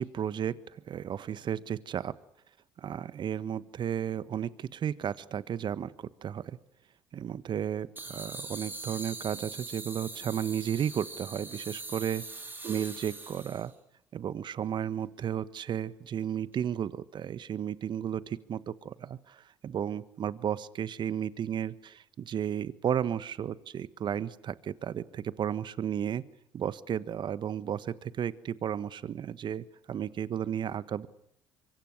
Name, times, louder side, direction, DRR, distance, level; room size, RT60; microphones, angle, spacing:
voice 1, 0.0-2.1 2.8-6.6 7.1-12.2 12.6-13.7 14.1-26.2 26.5-31.1, right 9 dB, 50° right, 17 dB, 1.4 m, -33 dB
sound 1, 8.0-13.7, right 3 dB, 20° right, 4.3 m, -42 dB
26.5 x 24.0 x 6.4 m, 0.73 s
hypercardioid pair, 55°, 10 cm